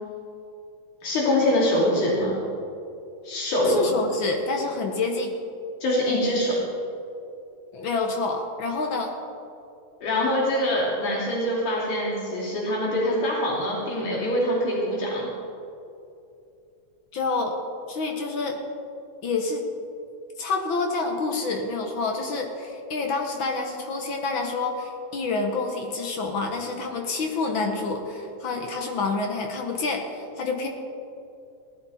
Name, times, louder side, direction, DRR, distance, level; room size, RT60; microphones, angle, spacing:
voice 1, 1.0-2.4 3.2-3.9 5.8-6.5 10.0-15.3, left 1 dB, 85° left, -6 dB, 4.5 m, -24 dB
voice 2, 3.6-5.3 7.7-9.1 17.1-17.6 17.9-18.6 19.2-19.6 20.4-30.7, left 3 dB, 55° left, 2 dB, 1.4 m, -28 dB
17.5 x 12.0 x 4.2 m, 2.7 s
omnidirectional pair, 3.4 m